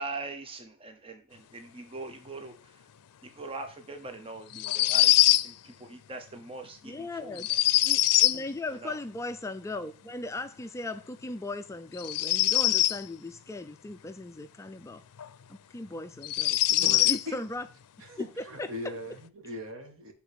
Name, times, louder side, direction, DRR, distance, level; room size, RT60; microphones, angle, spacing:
voice 1, 0.0-2.9 3.2-7.6 8.7-9.0, right 3 dB, 25° right, 0.7 m, -42 dB
sound 1, 4.5-5.5 7.4-8.4 12.0-13.0 15.2-15.3 16.2-17.2, left 15 dB, 90° left, 0.4 m, -23 dB
voice 2, 6.8-7.5 7.8-15.0 15.5-17.7 18.2-18.9, left 2 dB, 15° left, 0.3 m, -38 dB
voice 3, 16.8-17.4 18.0-20.1, left 1 dB, 65° right, 1.7 m, -40 dB
6.9 x 3.9 x 4.3 m
head